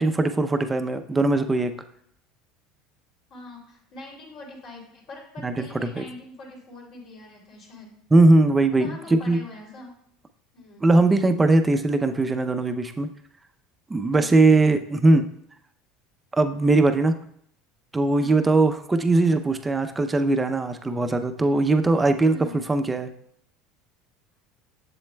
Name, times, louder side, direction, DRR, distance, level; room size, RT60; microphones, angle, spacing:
voice 1, 0.0-1.7 5.4-5.7 6.0-6.1 8.1-9.4 10.8-13.1 13.9-15.3 16.4-17.1 17.9-22.3 22.7-23.1, right 2 dB, 15° right, 8 dB, 0.5 m, -20 dB
voice 2, 3.3-7.9 8.7-10.0 10.5-10.9 14.1-14.3 18.2-18.4 22.3-22.7, left 2 dB, 55° left, -2 dB, 2.9 m, -43 dB
7.3 x 7.0 x 2.2 m, 0.68 s
supercardioid pair, 115°, 0 cm